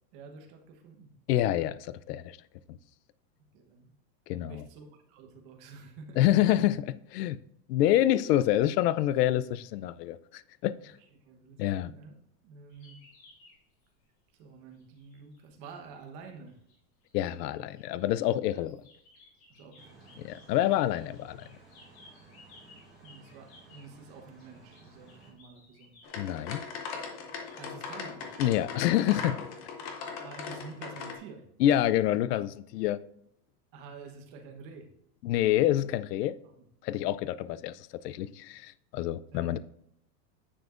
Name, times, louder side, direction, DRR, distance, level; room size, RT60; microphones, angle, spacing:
voice 1, 0.1-1.1 3.5-3.9 4.5-6.2 11.2-12.1 12.4-13.0 14.3-16.6 19.5-20.4 23.0-26.0 27.6-28.4 30.2-31.5 33.7-34.9 36.6-36.7 37.0-37.1 39.3-39.6, right 4 dB, 35° right, 1.1 m, -49 dB
voice 2, 1.3-2.4 2.7-2.8 4.3-4.6 6.2-7.4 7.7-10.9 11.6-11.9 17.1-18.8 20.2-21.5 26.2-26.6 28.4-29.4 31.6-33.0 35.2-36.4 36.8-39.6, left 13 dB, 75° left, 0.6 m, -27 dB
sound 1, 12.7-14.0 14.7-18.2 18.5-28.7, left 2 dB, 40° left, 2.6 m, -59 dB
sound 2, 19.8-25.3, right 3 dB, ahead, 2.1 m, -56 dB
sound 3, 26.0-31.1, left 5 dB, 25° left, 0.5 m, -39 dB
9.9 x 7.0 x 2.5 m
supercardioid pair, 175°, 49 cm